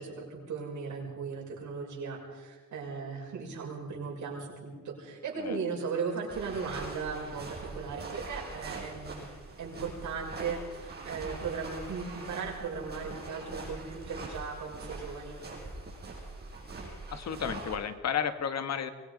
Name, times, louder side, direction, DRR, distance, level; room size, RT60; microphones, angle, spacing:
voice 1, 0.0-9.3 9.6-15.4, right 5 dB, 75° right, -1 dB, 6.5 m, -37 dB
sound 1, 6.3-17.8, right 3 dB, 35° right, 6.9 m, -43 dB
voice 2, 17.1-18.9, left 7 dB, 60° left, 9 dB, 1.7 m, -32 dB
24.0 x 21.0 x 5.4 m, 1.4 s
wide cardioid pair, 140°, 30 cm